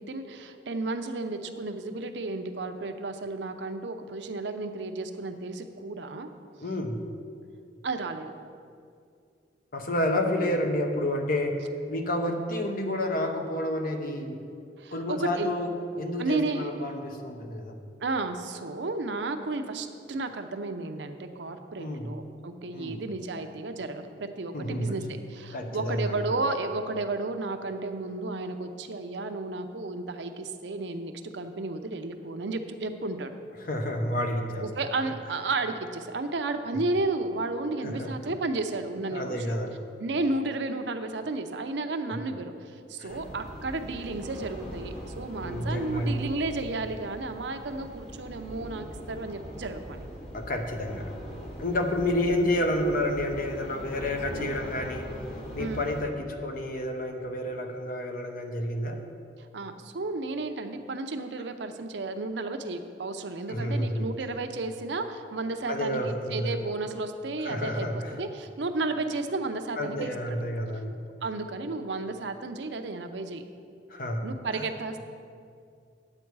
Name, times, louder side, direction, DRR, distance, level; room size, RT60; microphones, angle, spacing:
voice 1, 0.0-6.3 7.8-8.3 14.8-15.5 16.2-16.7 18.0-25.0 25.3-33.4 34.6-39.6 40.0-50.0 54.3-54.6 55.6-55.9 59.4-70.4 71.2-73.4 74.2-75.0, right 3 dB, 80° right, 7 dB, 0.7 m, -33 dB
voice 2, 6.6-7.0 9.7-11.6 11.9-14.4 14.9-17.8 21.8-22.2 22.7-23.0 24.5-25.0 25.5-26.2 33.6-34.7 37.8-38.1 39.1-39.8 42.1-42.2 43.0-43.3 45.4-46.3 50.3-51.1 51.6-55.0 55.5-59.0 63.5-64.1 65.7-66.6 67.4-68.1 69.8-71.1 73.9-74.3 74.5-74.7, left 1 dB, 55° left, 4 dB, 1.0 m, -30 dB
sound 1, 43.1-56.0, equal, 35° left, 1.7 m, -41 dB
9.7 x 8.2 x 4.7 m, 2.3 s
head